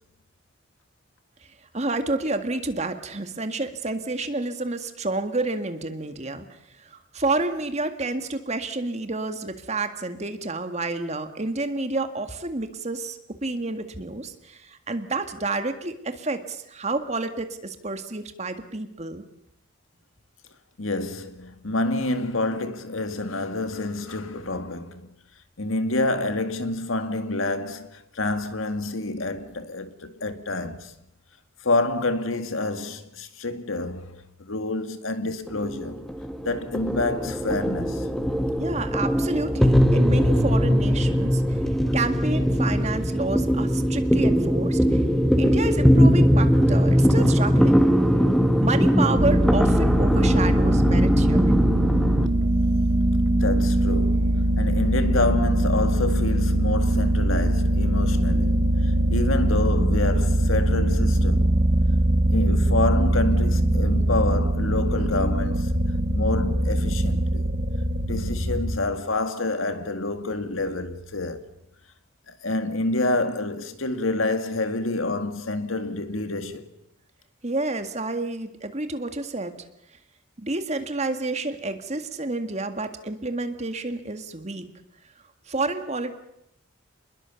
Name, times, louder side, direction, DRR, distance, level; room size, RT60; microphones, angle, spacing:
voice 1, 1.7-19.2 38.6-41.6 41.9-45.1 45.4-47.9 48.6-51.5 77.4-79.6 80.4-84.7 85.5-86.1, right 2 dB, 35° right, 1.9 m, -29 dB
voice 2, 20.8-25.1 25.6-31.0 31.6-36.1 36.4-38.1 53.3-61.5 62.3-65.8 66.1-67.5 68.0-71.5 72.3-76.7, left 2 dB, 85° left, 2.0 m, -28 dB
sound 1, 35.5-52.3, equal, ahead, 1.4 m, -20 dB
sound 2, 49.2-68.8, right 1 dB, 50° right, 1.7 m, -22 dB
27.5 x 21.0 x 7.1 m
head